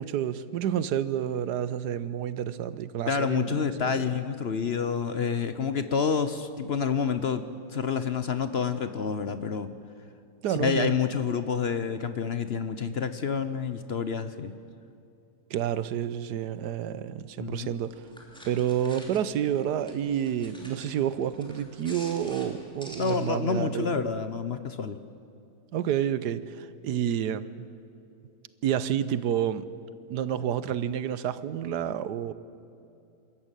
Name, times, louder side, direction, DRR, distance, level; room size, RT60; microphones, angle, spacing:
voice 1, 0.0-4.1 10.4-11.0 15.5-18.1 18.4-24.0 25.7-27.4 28.6-29.6 30.1-32.3, right 9 dB, 90° right, 1.4 m, -29 dB
voice 2, 3.1-9.7 10.5-14.5 17.4-17.7 23.0-25.0, left 6 dB, 50° left, 0.9 m, -28 dB
sound 1, 17.7-23.2, equal, 5° left, 3.1 m, -49 dB
27.5 x 13.5 x 9.0 m
omnidirectional pair, 1.7 m